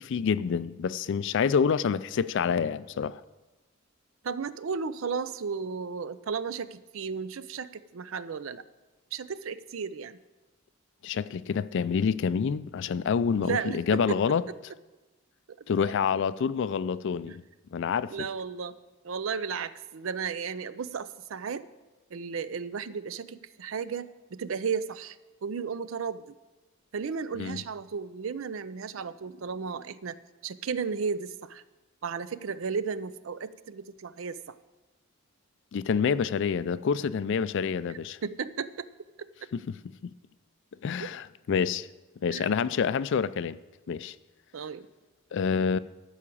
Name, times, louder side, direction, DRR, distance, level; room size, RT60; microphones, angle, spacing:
voice 1, 0.0-3.2 11.0-14.4 15.7-17.4 17.7-18.1 27.4-27.6 35.7-38.2 39.5-39.8 40.0-40.1 40.8-41.9 42.2-43.6 43.9-44.2 45.3-45.8, left 6 dB, 60° left, 0.4 m, -27 dB
voice 2, 4.2-8.6 9.1-10.2 13.4-14.2 15.8-15.9 17.3-17.4 18.1-18.8 19.0-21.7 22.1-25.2 25.4-26.3 26.9-30.2 30.4-31.6 32.0-34.6 38.2-38.9 39.2-39.3 41.0-41.1 42.3-42.6 44.5-44.9, right 5 dB, 70° right, 0.5 m, -34 dB
12.0 x 5.0 x 8.5 m
head